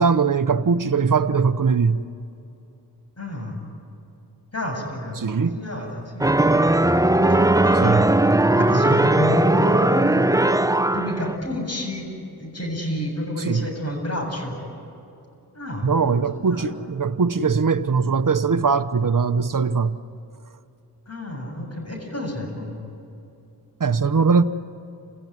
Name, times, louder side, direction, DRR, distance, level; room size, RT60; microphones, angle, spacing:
voice 1, 0.0-2.0 5.2-5.6 7.8-8.0 13.4-13.7 15.8-20.0 23.8-24.4, right 5 dB, 50° right, 1.0 m, -20 dB
voice 2, 3.2-3.6 4.5-5.3 5.5-6.5 7.3-8.0 8.5-10.5 10.9-12.1 12.4-14.6 15.5-15.9 16.3-16.7 21.1-22.8, left 1 dB, 40° left, 7.7 m, -30 dB
sound 1, 6.2-11.4, right 1 dB, 10° right, 0.8 m, -18 dB
28.5 x 17.0 x 9.7 m
cardioid pair, 50°, 40 cm